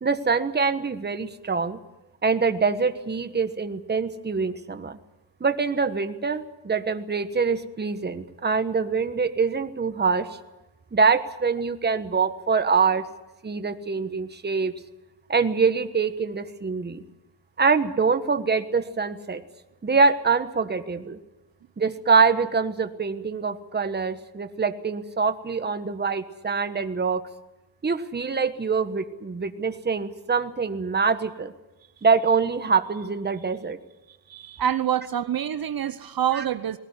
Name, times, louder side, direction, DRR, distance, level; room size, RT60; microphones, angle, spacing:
voice 1, 0.0-1.8 2.2-5.0 5.4-10.3 10.9-13.0 13.4-14.7 15.3-17.0 17.6-19.4 19.8-21.2 21.8-27.2 27.8-31.5 32.0-33.8 36.3-36.4, right 5 dB, 25° right, 9 dB, 1.3 m, -24 dB
voice 2, 34.3-36.8, right 10 dB, 55° right, 12 dB, 0.9 m, -26 dB
20.0 x 18.5 x 9.7 m, 1.0 s
cardioid pair, 125°, 41 cm